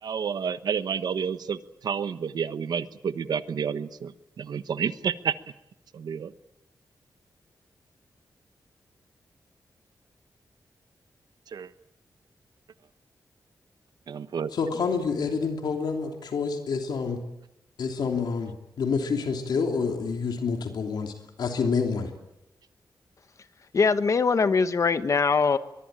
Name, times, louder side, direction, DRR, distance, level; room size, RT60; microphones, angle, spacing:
voice 1, 0.0-5.3 5.9-6.3 11.5-11.7 14.1-14.5, right 7 dB, 75° right, 13 dB, 1.1 m, -30 dB
voice 2, 14.5-17.2 17.8-21.1 21.4-22.1, left 5 dB, 85° left, 4 dB, 3.1 m, -28 dB
voice 3, 23.7-25.6, left 5 dB, 50° left, 12 dB, 1.3 m, -22 dB
23.0 x 22.5 x 8.9 m, 0.89 s
wide cardioid pair, 130°, 7 cm